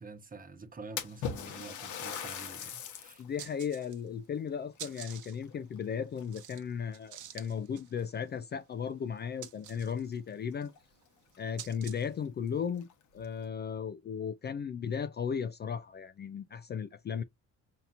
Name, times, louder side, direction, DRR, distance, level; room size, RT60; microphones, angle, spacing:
voice 1, 0.0-3.2, right 4 dB, 30° right, 1.0 m, -48 dB
Splash splatter, 1.0-3.3 3.8-3.9 4.8-5.8 6.2-6.6 7.4-7.5 8.0-8.1 10.3-10.4 10.7-10.8 11.3-11.4 11.8-11.9 12.7-13.3, left 7 dB, 75° left, 1.0 m, -40 dB
sound 1, 2.7-2.8 3.2-4.2 4.5-12.2, right 10 dB, 75° right, 1.0 m, -49 dB
voice 2, 3.2-10.7 11.4-12.9 13.1-17.2, left 7 dB, 35° left, 0.4 m, -36 dB
5.6 x 2.8 x 2.5 m
cardioid pair, 90°, 30 cm